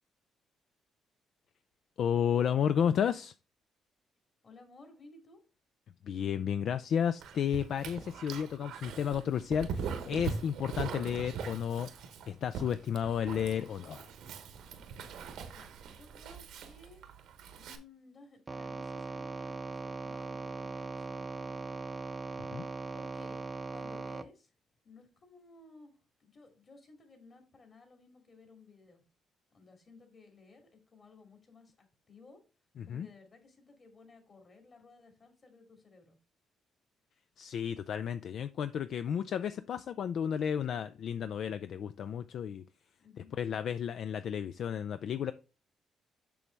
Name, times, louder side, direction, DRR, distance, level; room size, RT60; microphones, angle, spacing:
voice 1, 2.0-3.3 6.0-11.9 12.3-14.1 22.4-22.7 32.8-33.1 37.4-42.6 43.4-45.3, left 8 dB, 65° left, 12 dB, 0.3 m, -32 dB
voice 2, 4.4-5.4 15.5-17.0 17.5-22.1 22.9-24.5 24.8-29.0 29.5-32.4 32.8-36.2 43.0-43.4, left 3 dB, 40° left, 4 dB, 2.6 m, -57 dB
Dog, 7.2-17.8, right 6 dB, 85° right, 1.0 m, -42 dB
sound 1, 18.5-24.2, right 3 dB, 25° right, 0.6 m, -40 dB
6.9 x 6.2 x 3.4 m, 0.31 s
cardioid pair, 90°, 0 cm